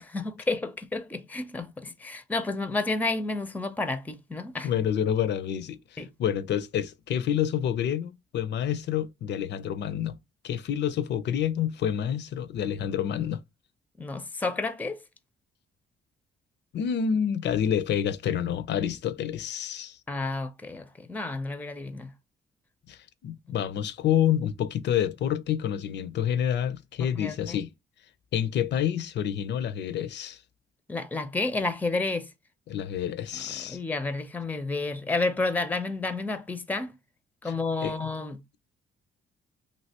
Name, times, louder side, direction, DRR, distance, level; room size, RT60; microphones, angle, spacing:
voice 1, 0.0-4.7 6.0-6.1 14.0-15.0 20.1-22.1 27.0-27.6 30.9-32.3 33.6-36.9 37.4-38.4, left 3 dB, 10° left, 0.5 m, -31 dB
voice 2, 4.6-10.2 10.4-13.4 16.7-20.0 22.9-27.7 28.3-30.4 32.7-33.8 37.4-37.5 37.8-38.1, left 9 dB, 60° left, 0.5 m, -28 dB
3.2 x 2.7 x 2.8 m
cardioid pair, 90°, 20 cm